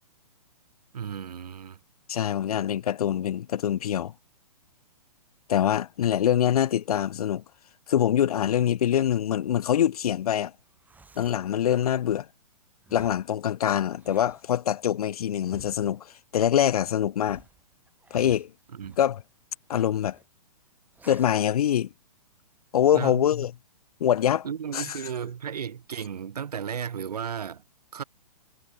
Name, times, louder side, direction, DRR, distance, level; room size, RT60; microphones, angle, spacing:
voice 1, 0.9-1.8 18.7-19.0 22.9-23.3 24.4-27.6 27.9-28.0, right 8 dB, 75° right, 1.0 m, -34 dB
voice 2, 2.1-4.1 5.5-7.4 7.9-10.5 11.2-12.3 12.9-16.1 16.3-17.4 18.1-18.5 19.0-19.2 19.7-20.2 21.1-21.9 22.7-23.5 24.0-24.5 24.7-24.9, left 10 dB, 70° left, 0.5 m, -24 dB
sound 1, 10.6-11.5 12.8-13.3 13.9-14.5 15.4-16.0 17.2-19.1 19.7-20.3 21.0-21.5, right 4 dB, 10° right, 6.9 m, -51 dB
hypercardioid pair, 130°, 20 cm